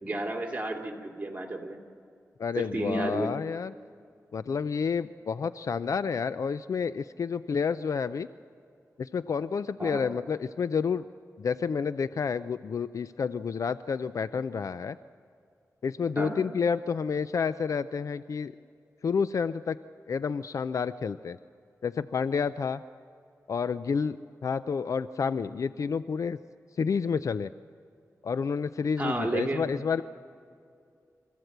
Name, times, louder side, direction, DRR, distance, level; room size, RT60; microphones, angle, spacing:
voice 1, 0.0-1.8 2.6-3.3 9.8-10.1 16.2-16.4 29.0-29.7, right 2 dB, 20° right, 2 dB, 2.7 m, -32 dB
voice 2, 2.4-3.7 4.3-8.3 9.0-11.1 11.4-15.0 15.8-18.5 19.0-19.8 20.1-21.4 21.8-22.8 23.5-24.2 24.4-26.4 26.8-27.5 28.2-30.0, left 6 dB, 65° left, 14 dB, 0.4 m, -29 dB
26.0 x 15.0 x 8.0 m, 2.4 s
wide cardioid pair, 90°, 6 cm